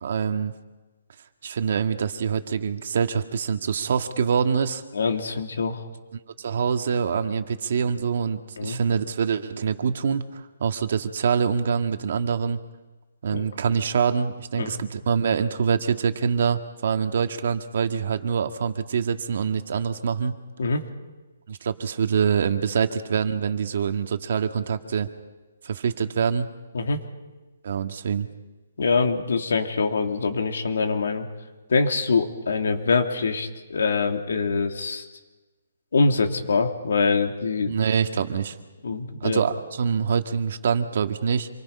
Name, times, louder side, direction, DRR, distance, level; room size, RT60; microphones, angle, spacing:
voice 1, 0.0-0.5 1.4-4.8 6.4-12.6 13.2-20.4 21.5-25.1 25.6-26.5 27.6-28.3 37.7-38.6 39.2-41.5, right 6 dB, 55° right, 7 dB, 1.8 m, -25 dB
voice 2, 4.9-5.9 8.6-8.8 13.3-13.5 14.6-14.8 20.6-20.8 26.7-27.0 28.8-31.3 31.7-35.0 35.9-37.8 38.8-39.4, left 4 dB, 80° left, 4 dB, 3.1 m, -24 dB
27.5 x 23.5 x 5.6 m, 1.2 s
hypercardioid pair, 165°, 0 cm